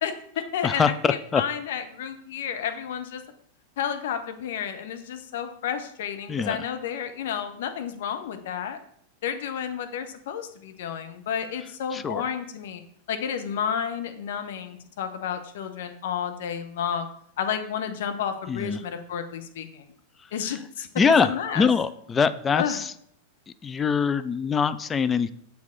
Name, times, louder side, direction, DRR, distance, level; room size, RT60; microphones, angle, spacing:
voice 1, 0.0-3.2 3.8-8.8 9.2-12.8 13.1-17.1 17.4-19.9 20.3-20.9 21.2-21.7 22.5-22.8, left 8 dB, 55° left, 7 dB, 0.7 m, -31 dB
voice 2, 0.6-1.4 6.3-6.6 11.9-12.2 18.5-18.8 21.0-22.9 23.6-25.3, left 5 dB, 20° left, 12 dB, 0.3 m, -23 dB
6.9 x 4.5 x 3.8 m, 0.66 s
figure-of-eight pair, 90°, 0 cm